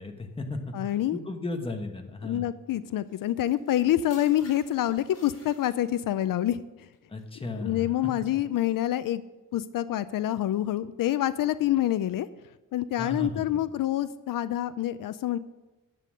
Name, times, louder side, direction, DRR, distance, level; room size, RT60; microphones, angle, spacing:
voice 1, 0.0-2.5 7.1-8.1 13.0-13.4, left 2 dB, 15° left, 4 dB, 1.2 m, -35 dB
voice 2, 0.7-1.2 2.2-6.9 7.6-9.2 9.5-12.3 12.7-15.4, left 12 dB, 75° left, 14 dB, 0.5 m, -27 dB
sound 1, 3.1-6.1 6.9-7.2, left 3 dB, 50° left, 4.5 m, -54 dB
11.0 x 8.5 x 6.5 m, 1.1 s
wide cardioid pair, 150°, 33 cm